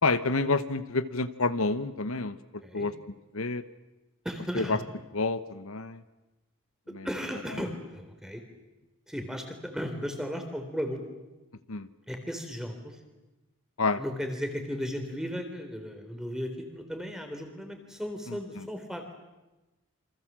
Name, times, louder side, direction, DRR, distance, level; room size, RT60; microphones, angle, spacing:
voice 1, 0.0-2.9 3.3-3.6 4.5-4.8 5.1-6.0 6.9-7.1 11.7-11.9 13.8-14.0 18.3-18.7, left 3 dB, 85° left, 12 dB, 1.1 m, -29 dB
voice 2, 4.2-4.8 7.0-8.4 9.1-11.2 12.1-13.0 14.0-19.1, equal, 5° right, 5 dB, 3.6 m, -35 dB
28.0 x 25.5 x 7.5 m, 1.1 s
head